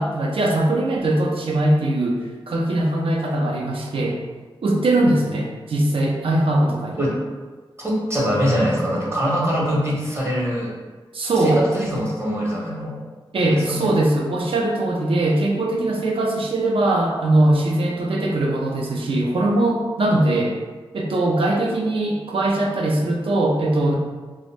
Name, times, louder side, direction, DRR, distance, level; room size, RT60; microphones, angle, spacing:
voice 1, 0.0-4.2 4.6-7.0 11.1-11.7 13.3-20.6 20.9-23.9, right 1 dB, 70° right, 0 dB, 0.5 m, -21 dB
voice 2, 7.8-10.7 11.3-13.0 13.4-13.9, equal, 25° right, -4 dB, 0.8 m, -23 dB
2.5 x 2.0 x 3.2 m, 1.4 s
wide cardioid pair, 65°, 10 cm